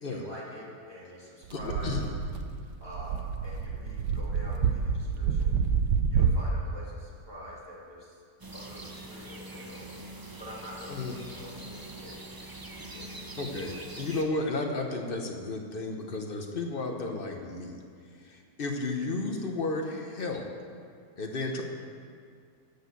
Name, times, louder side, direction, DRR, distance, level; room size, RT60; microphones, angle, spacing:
voice 1, 0.1-1.9 2.8-5.6 6.1-8.2 8.5-12.6 12.9-13.3, left 1 dB, 15° left, -7 dB, 2.3 m, -46 dB
voice 2, 1.5-2.1 10.9-11.1 13.4-17.8 18.1-20.5 21.2-21.6, left 2 dB, 40° left, 2 dB, 1.0 m, -33 dB
sound 1, 1.5-6.5, right 6 dB, 85° right, 1.3 m, -28 dB
sound 2, 8.4-14.2, right 2 dB, 30° right, 0.3 m, -43 dB
13.5 x 4.9 x 8.2 m, 2.2 s
omnidirectional pair, 1.8 m